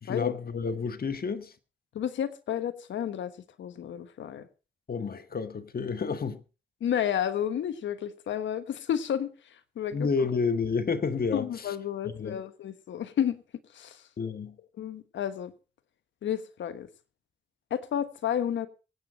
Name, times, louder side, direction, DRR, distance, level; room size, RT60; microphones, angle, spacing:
voice 1, 0.0-1.5 4.9-6.4 9.9-11.5 12.1-12.4 14.2-14.6, left 5 dB, 55° left, 1.7 m, -30 dB
voice 2, 1.9-4.5 6.8-10.1 11.3-13.4 13.7-14.0 14.8-15.5 16.2-16.9 17.7-18.7, left 9 dB, 80° left, 1.3 m, -31 dB
23.5 x 9.0 x 4.2 m
supercardioid pair, 50°, 19 cm